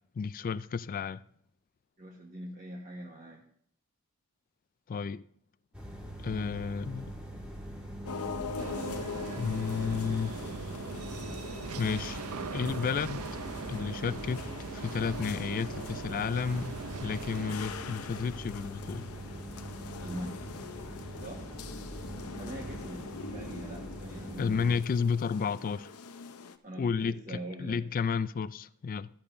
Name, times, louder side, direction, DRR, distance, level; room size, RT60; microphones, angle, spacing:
voice 1, 0.2-1.2 4.9-5.2 6.2-7.1 9.4-10.3 11.8-12.2 12.5-13.2 13.7-14.4 14.7-16.8 17.0-19.1 24.4-25.9 26.8-29.1, left 5 dB, 40° left, 0.3 m, -32 dB
voice 2, 2.0-3.4 20.0-20.4 21.2-21.4 22.3-23.0 23.3-24.7 26.6-27.8, right 1 dB, 40° right, 1.3 m, -42 dB
sound 1, 5.7-24.8, right 1 dB, 5° right, 2.0 m, -43 dB
sound 2, 8.0-26.6, left 5 dB, 90° left, 0.7 m, -44 dB
sound 3, 8.6-17.6, right 5 dB, 80° right, 0.6 m, -41 dB
13.5 x 12.0 x 2.6 m
head